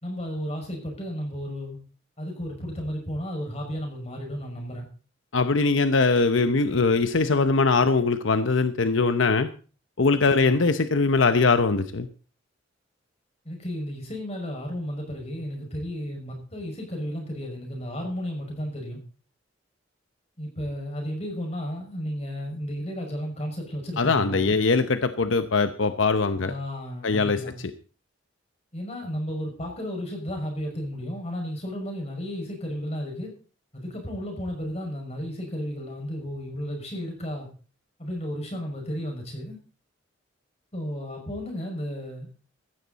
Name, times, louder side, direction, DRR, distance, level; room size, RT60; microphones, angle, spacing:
voice 1, 0.0-1.8 2.2-4.9 10.4-10.7 13.4-19.0 20.4-24.5 26.4-27.6 28.7-33.3 33.7-37.5 38.0-39.6 40.7-42.3, equal, 35° left, 1 dB, 5.8 m, -33 dB
voice 2, 5.3-9.5 10.0-12.1 24.0-26.5 27.0-27.4, left 4 dB, 90° left, 10 dB, 0.8 m, -21 dB
16.0 x 12.5 x 4.1 m, 0.38 s
head